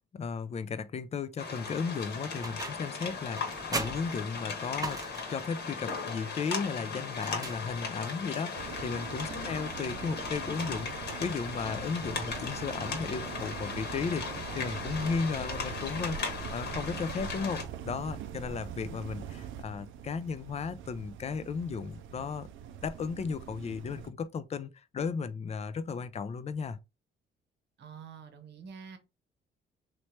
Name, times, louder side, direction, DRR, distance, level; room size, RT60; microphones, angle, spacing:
voice 1, 0.1-5.0 5.3-14.3 14.5-22.5 22.8-26.8, left 5 dB, 35° left, 0.4 m, -35 dB
sound 1, 1.4-17.6, left 4 dB, 60° left, 1.2 m, -37 dB
sound 2, 2.4-3.0 3.4-5.5 7.1-8.1, right 2 dB, 20° right, 0.6 m, -39 dB
sound 3, 8.5-24.1, right 8 dB, 75° right, 0.5 m, -43 dB
voice 2, 9.2-9.6 27.8-29.0, right 4 dB, 60° right, 0.9 m, -47 dB
3.1 x 2.9 x 3.2 m
cardioid pair, 90°, 20 cm